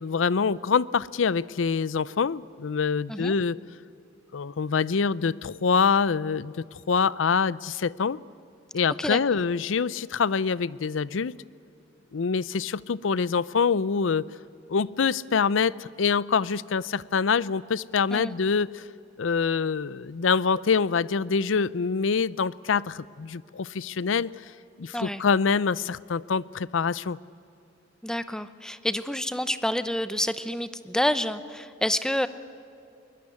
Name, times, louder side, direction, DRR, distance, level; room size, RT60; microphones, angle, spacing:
voice 1, 0.0-3.6 4.3-8.2 8.7-11.3 12.1-14.4 14.7-18.8 19.2-24.3 24.8-27.2, left 5 dB, 85° left, 20 dB, 0.5 m, -25 dB
voice 2, 28.0-32.3, left 1 dB, 5° left, 13 dB, 0.8 m, -28 dB
22.0 x 19.5 x 9.8 m, 2.6 s
head